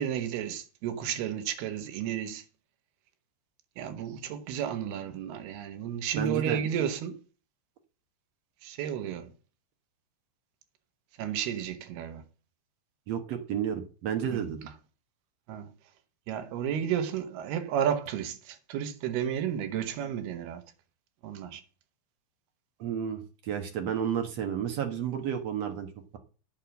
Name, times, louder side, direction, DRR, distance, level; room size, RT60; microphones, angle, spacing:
voice 1, 0.0-2.4 3.8-7.2 8.6-9.3 11.2-12.2 14.3-14.4 15.5-15.7 16.3-20.6 21.2-21.6, right 9 dB, 85° right, 3.1 m, -32 dB
voice 2, 6.2-6.6 13.1-14.6 22.8-26.2, right 8 dB, 65° right, 1.7 m, -31 dB
8.6 x 5.9 x 7.6 m
omnidirectional pair, 4.5 m